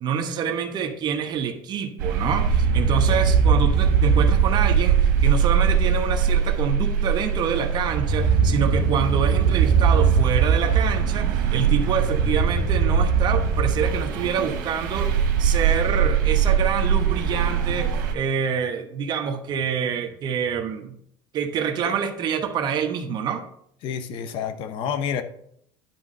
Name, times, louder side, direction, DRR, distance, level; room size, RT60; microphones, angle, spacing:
voice 1, 0.0-21.0 21.3-23.4, right 7 dB, 45° right, 1.0 m, -27 dB
sound 1, 2.0-18.1, right 6 dB, 90° right, 1.4 m, -21 dB
voice 2, 23.8-25.2, left 7 dB, 60° left, 0.8 m, -29 dB
10.5 x 3.7 x 5.3 m
supercardioid pair, 120°, 10 cm